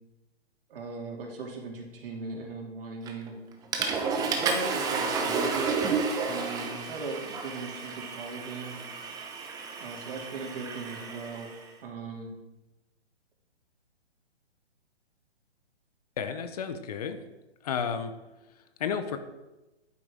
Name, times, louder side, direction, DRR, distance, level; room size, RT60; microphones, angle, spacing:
voice 1, 0.7-3.4 4.1-5.8 6.2-8.8 9.8-11.5 11.8-12.3, right 4 dB, 55° right, 0 dB, 2.9 m, -38 dB
Water / Toilet flush, 3.1-3.3 3.7-11.6, right 4 dB, 10° right, 0.9 m, -31 dB
voice 2, 16.2-17.2 17.6-18.1 18.8-19.2, left 7 dB, 35° left, 9 dB, 0.8 m, -31 dB
11.0 x 9.5 x 3.6 m, 1.0 s
hypercardioid pair, 140°, 33 cm